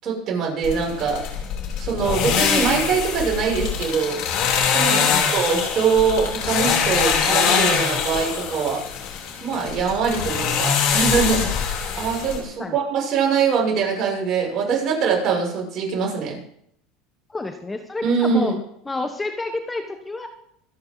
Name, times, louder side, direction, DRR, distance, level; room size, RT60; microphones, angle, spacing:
voice 1, 0.0-1.2 1.8-4.2 4.7-8.8 9.4-11.5 11.9-16.4 18.0-18.5, right 5 dB, 45° right, -2 dB, 7.3 m, -23 dB
sound 1, 0.6-12.4, left 7 dB, 60° left, 4.0 m, -23 dB
voice 2, 4.8-5.3 12.6-12.8 17.3-18.5 18.8-20.3, left 2 dB, 15° left, 6 dB, 1.3 m, -29 dB
25.5 x 9.5 x 4.1 m, 0.72 s
supercardioid pair, 120°, 0 cm